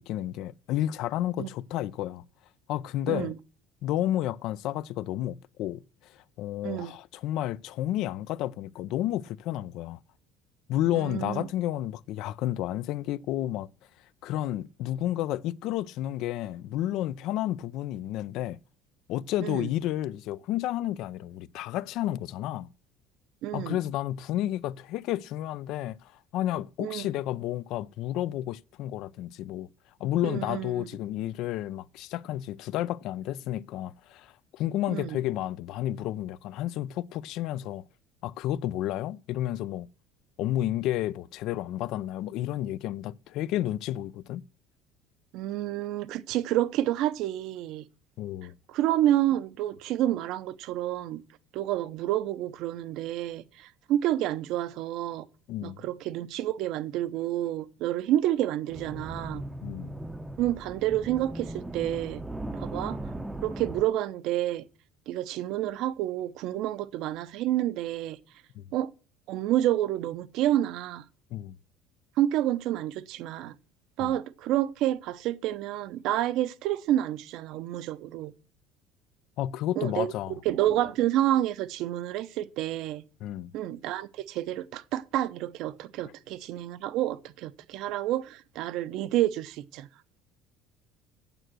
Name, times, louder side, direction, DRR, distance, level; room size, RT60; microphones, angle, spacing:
voice 1, 0.0-2.2 2.7-3.3 3.8-10.0 10.7-13.7 14.2-18.6 19.1-22.7 23.5-29.7 30.0-37.8 38.2-39.9 40.4-44.4 48.2-48.5 55.5-55.8 59.6-59.9 68.6-68.7 71.3-71.6 74.0-74.2 79.4-80.4 83.2-83.5, left 13 dB, 55° left, 0.5 m, -31 dB
voice 2, 10.9-11.5 19.4-19.7 23.4-23.8 26.8-27.1 30.2-30.9 34.9-35.2 45.3-47.8 48.7-51.2 51.5-55.2 55.6-59.4 60.4-62.2 62.5-63.0 63.4-64.6 65.1-68.2 68.7-68.9 69.3-71.0 72.2-73.6 74.0-78.3 79.8-80.1 80.4-83.0 83.5-89.9, right 13 dB, 60° right, 0.7 m, -29 dB
sound 1, 58.7-63.8, right 1 dB, 5° right, 0.7 m, -38 dB
9.0 x 7.8 x 6.2 m
cardioid pair, 160°, 0 cm